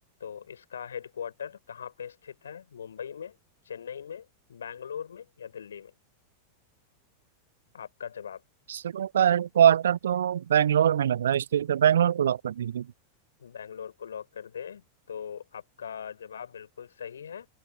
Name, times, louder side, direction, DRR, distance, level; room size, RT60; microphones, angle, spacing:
voice 1, 0.2-3.4 3.6-5.9 7.7-8.4 13.4-17.5, left 8 dB, 70° left, 5.0 m, -40 dB
voice 2, 8.7-12.9, right 9 dB, 65° right, 0.3 m, -23 dB
figure-of-eight pair, 90°, 0 cm